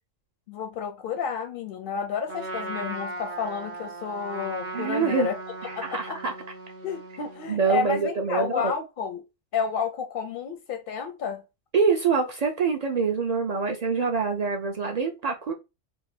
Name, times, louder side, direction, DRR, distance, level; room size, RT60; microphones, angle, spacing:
voice 1, 0.5-5.4 5.7-6.2 6.8-9.2 9.5-11.4, left 6 dB, 60° left, 0.6 m, -31 dB
Trumpet, 2.3-7.5, right 2 dB, 15° right, 0.6 m, -37 dB
voice 2, 4.7-5.3 5.7-6.3 7.5-8.7 11.7-15.5, right 5 dB, 60° right, 0.4 m, -25 dB
2.6 x 2.5 x 3.2 m
omnidirectional pair, 1.3 m